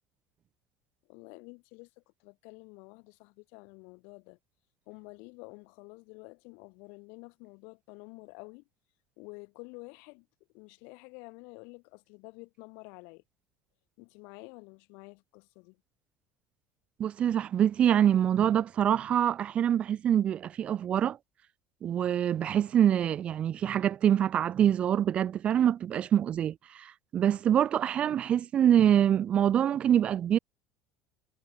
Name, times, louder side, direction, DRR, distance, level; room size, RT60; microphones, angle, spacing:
voice 1, 1.1-4.4 4.9-8.7 9.2-10.3 10.5-13.2 14.0-15.8, left 33 dB, 75° left, 3.7 m, -49 dB
voice 2, 17.0-21.2 21.8-30.4, right 10 dB, 35° right, 1.0 m, -25 dB
cardioid pair, 145°, 3 cm